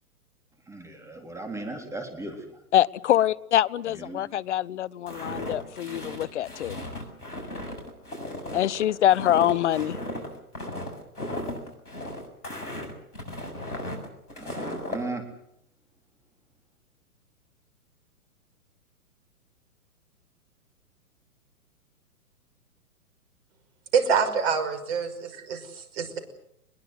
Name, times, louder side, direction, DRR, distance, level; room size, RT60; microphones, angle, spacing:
voice 1, 0.7-2.6 3.9-4.2 14.3-15.3, right 2 dB, 5° right, 4 dB, 3.8 m, -37 dB
voice 2, 2.7-6.8 8.5-10.0, left 12 dB, 50° left, 20 dB, 0.9 m, -24 dB
Walk footsteps, 5.1-15.0, left 1 dB, 85° left, 6.8 m, -36 dB
voice 3, 23.9-26.2, right 6 dB, 45° right, 8 dB, 5.7 m, -26 dB
23.5 x 21.5 x 8.1 m, 0.76 s
figure-of-eight pair, 120°, 44 cm